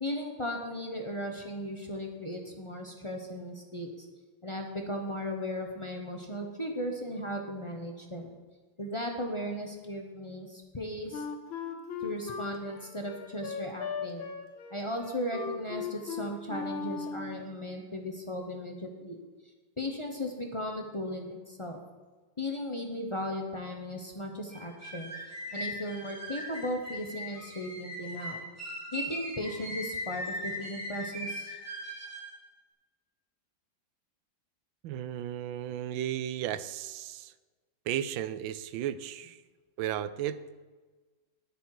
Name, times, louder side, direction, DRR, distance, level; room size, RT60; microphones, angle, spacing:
voice 1, 0.0-4.1 4.4-8.3 8.8-11.3 12.0-14.3 14.7-19.2 19.8-21.8 22.4-25.1 25.5-28.4 28.9-31.6, equal, 25° left, 2 dB, 0.7 m, -36 dB
Wind instrument woodwind instrument, 11.1-17.4, left 6 dB, 90° left, 1.9 m, -37 dB
sound 1, 24.5-32.3, equal, 5° right, 2.7 m, -39 dB
voice 2, 34.8-37.3 37.9-39.4 39.8-40.4, right 11 dB, 80° right, 15 dB, 1.3 m, -34 dB
10.5 x 9.9 x 4.8 m, 1.3 s
omnidirectional pair, 2.1 m